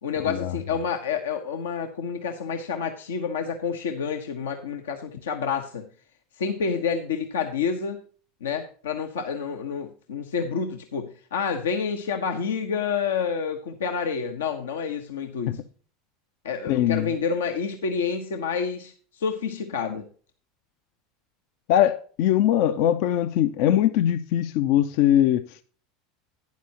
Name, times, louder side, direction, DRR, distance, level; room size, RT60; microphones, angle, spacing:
voice 1, 0.0-5.9 6.4-8.0 8.4-15.6 16.4-20.0, left 6 dB, 85° left, 1.0 m, -28 dB
voice 2, 16.6-17.1 21.7-25.4, left 11 dB, 65° left, 0.6 m, -21 dB
11.5 x 9.6 x 2.9 m
hypercardioid pair, 85°, 0 cm